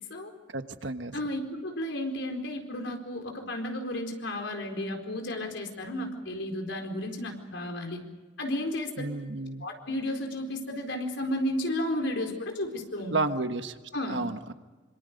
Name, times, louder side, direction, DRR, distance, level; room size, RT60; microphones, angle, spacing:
voice 1, 0.5-1.2 9.0-9.7 13.1-13.8 14.1-14.5, right 2 dB, 75° right, 8 dB, 1.4 m, -31 dB
voice 2, 1.1-8.0 8.4-8.9 9.6-13.2 13.9-14.2, left 1 dB, 75° left, 4 dB, 4.4 m, -33 dB
26.0 x 25.5 x 5.2 m, 1.3 s
head